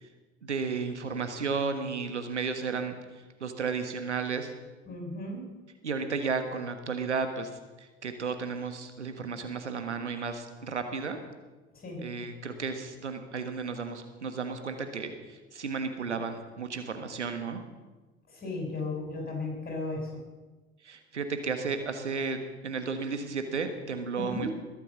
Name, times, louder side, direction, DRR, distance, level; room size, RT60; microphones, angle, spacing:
voice 1, 0.4-3.0 3.4-4.5 5.8-7.5 7.8-11.2 12.0-17.6 20.8-24.5, right 5 dB, 85° right, 8 dB, 1.5 m, -33 dB
voice 2, 4.9-5.4 11.7-12.0 18.3-20.2 24.2-24.5, left 2 dB, 25° left, 2 dB, 7.2 m, -35 dB
21.0 x 9.0 x 7.4 m, 1.2 s
figure-of-eight pair, 70°, 34 cm